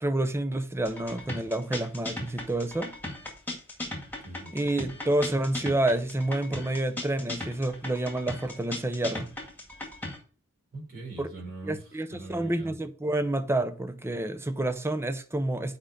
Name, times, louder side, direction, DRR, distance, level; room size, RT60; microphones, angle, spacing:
voice 1, 0.0-2.9 4.5-9.3 11.2-11.3 11.6-15.8, right 1 dB, 10° right, 0.6 m, -29 dB
sound 1, 0.8-10.2, left 2 dB, 10° left, 1.9 m, -37 dB
voice 2, 4.2-4.9 10.7-12.7, right 2 dB, 45° right, 4.5 m, -43 dB
8.1 x 5.1 x 4.8 m
head